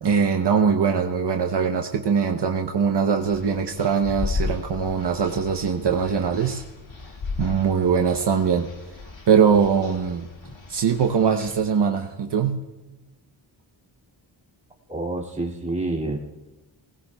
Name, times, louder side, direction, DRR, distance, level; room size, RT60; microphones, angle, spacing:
voice 1, 0.0-6.6 7.4-8.7 9.3-10.3 10.7-12.6, right 6 dB, 60° right, 3 dB, 0.9 m, -22 dB
sound 1, 3.2-11.5, left 4 dB, 70° left, 2.2 m, -35 dB
voice 2, 14.9-16.2, right 2 dB, 15° right, -2 dB, 2.4 m, -28 dB
20.0 x 18.5 x 2.3 m, 1.1 s
wide cardioid pair, 95°, 46 cm